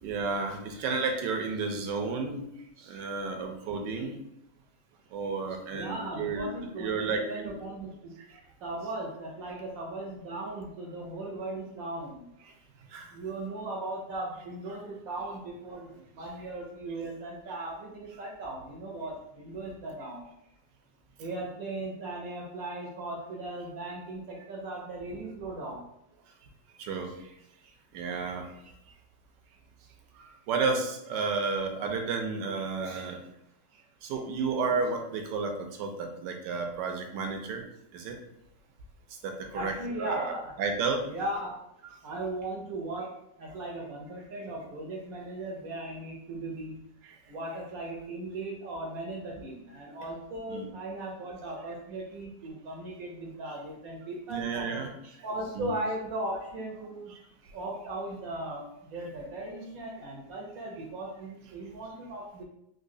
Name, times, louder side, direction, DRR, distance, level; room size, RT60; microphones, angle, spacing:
voice 1, 0.0-2.5 2.9-4.2 5.1-7.5 12.9-13.1 26.8-27.1 27.9-28.5 30.5-33.2 34.0-37.6 37.9-38.2 39.2-40.3 40.6-41.0 41.8-41.9 50.5-50.7 54.3-54.9 55.5-55.7, right 4 dB, 80° right, 4 dB, 1.2 m, -32 dB
voice 2, 5.7-8.1 8.6-12.2 13.1-20.2 21.2-25.8 39.5-40.5 41.1-41.5 42.0-43.1 43.4-46.8 47.3-54.8 55.2-57.1 57.5-62.4, right 2 dB, 65° right, -1 dB, 1.0 m, -37 dB
3.9 x 2.7 x 2.6 m, 0.78 s
omnidirectional pair, 1.8 m